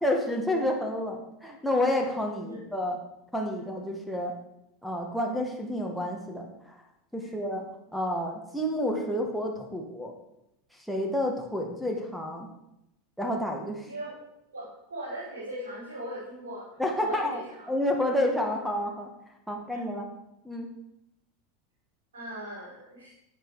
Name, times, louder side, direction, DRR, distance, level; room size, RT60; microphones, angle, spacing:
voice 1, 0.0-3.0 3.3-4.3 4.8-6.8 7.1-7.6 7.9-10.1 10.7-12.5 13.2-13.9 16.8-17.4 17.7-19.1 19.5-20.1 20.4-20.7, left 1 dB, ahead, 2 dB, 1.9 m, -29 dB
voice 2, 14.5-16.7 17.0-17.7 19.7-19.8 22.1-23.1, right 1 dB, 85° right, -9 dB, 4.9 m, -39 dB
10.0 x 8.4 x 4.9 m, 0.85 s
hypercardioid pair, 90°, 0 cm